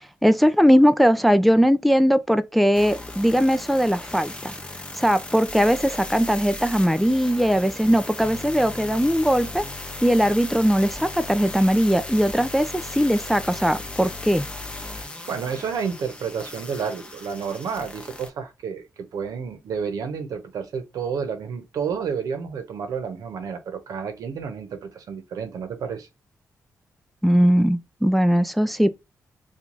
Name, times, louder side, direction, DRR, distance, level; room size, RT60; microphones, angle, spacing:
voice 1, 0.2-4.5 5.0-9.6 10.0-14.4 27.2-28.9, equal, ahead, 0.4 m, -20 dB
sound 1, 2.7-18.3, left 2 dB, 20° left, 0.9 m, -36 dB
voice 2, 14.9-26.1, right 6 dB, 80° right, 0.9 m, -30 dB
3.0 x 2.4 x 3.8 m
cardioid pair, 70°, 6 cm